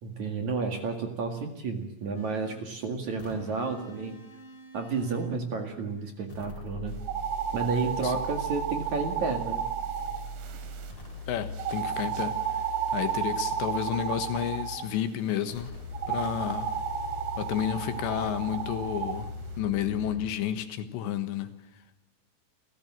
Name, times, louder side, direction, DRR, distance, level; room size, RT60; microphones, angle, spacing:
voice 1, 0.0-4.2 4.7-7.0 7.5-9.6, right 4 dB, 50° right, 5 dB, 2.8 m, -31 dB
sound 1, 2.1-2.7 3.2-5.4 6.3-14.9 15.5-20.3, left 1 dB, 35° left, 5.1 m, -41 dB
sound 2, 7.0-10.9 11.6-14.9 15.9-19.2, right 8 dB, 80° right, 4.6 m, -33 dB
voice 2, 11.3-12.4 12.9-15.7 16.1-16.7 17.4-19.3 19.6-21.5, left 10 dB, 80° left, 10 dB, 3.6 m, -31 dB
29.5 x 16.0 x 7.6 m, 0.89 s
omnidirectional pair, 5.2 m